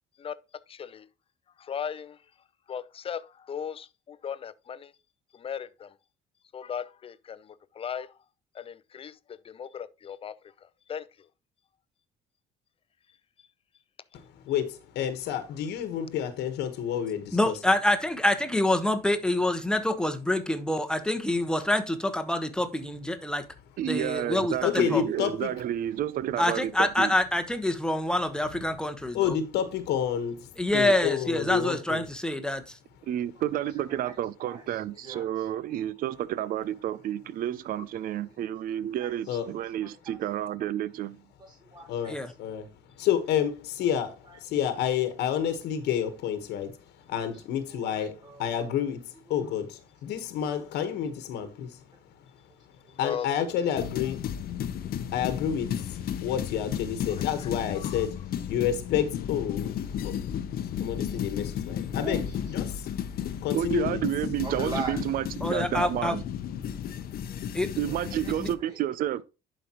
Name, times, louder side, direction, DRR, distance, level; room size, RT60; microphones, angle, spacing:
voice 1, 0.7-1.1 1.6-2.2 2.7-4.9 5.3-5.9 6.5-8.2 8.5-10.4 10.6-11.3 53.0-53.5 57.1-58.1, left 8 dB, 35° left, 0.6 m, -38 dB
voice 2, 14.1-17.5 24.6-25.5 29.1-32.0 39.3-39.4 41.9-42.7 43.0-46.8 47.1-51.8 53.0-54.2 55.1-58.2 58.5-59.7 60.0-60.2 60.8-62.2 62.5-62.9 63.4-64.0, left 9 dB, 80° left, 1.3 m, -29 dB
voice 3, 17.3-23.4 23.9-25.1 26.4-29.3 30.6-32.8 42.1-42.3 65.4-66.1 67.5-67.7 68.4-68.5, left 1 dB, 5° left, 1.1 m, -26 dB
voice 4, 23.8-27.1 33.1-41.2 63.5-66.2 67.8-69.2, right 11 dB, 55° right, 0.5 m, -30 dB
voice 5, 34.4-35.5 39.0-39.1 39.8-40.1 41.4-42.1 44.3-44.4 47.2-47.3 47.7-48.4 54.0-54.1 61.9-62.4 64.4-65.0 67.0-67.4 67.9-68.8, right 3 dB, 25° right, 1.7 m, -41 dB
sound 1, 53.7-68.5, left 9 dB, 60° left, 0.8 m, -33 dB
11.0 x 5.2 x 3.0 m
cardioid pair, 110°, 17 cm